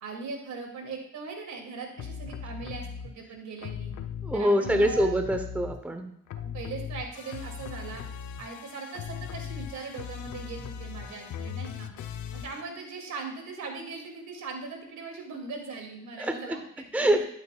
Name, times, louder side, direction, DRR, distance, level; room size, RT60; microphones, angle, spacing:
voice 1, 0.0-3.9 4.3-5.2 6.4-8.0 8.4-11.9 12.3-17.2, right 4 dB, 70° right, 2 dB, 2.7 m, -40 dB
sound 1, 2.0-3.1 3.6-6.0 6.3-12.6, left 7 dB, 70° left, 0.9 m, -38 dB
voice 2, 4.2-6.1 16.2-16.6 16.9-17.2, equal, 5° right, 7 dB, 0.9 m, -25 dB
12.0 x 8.7 x 2.4 m, 0.76 s
cardioid pair, 90°, 30 cm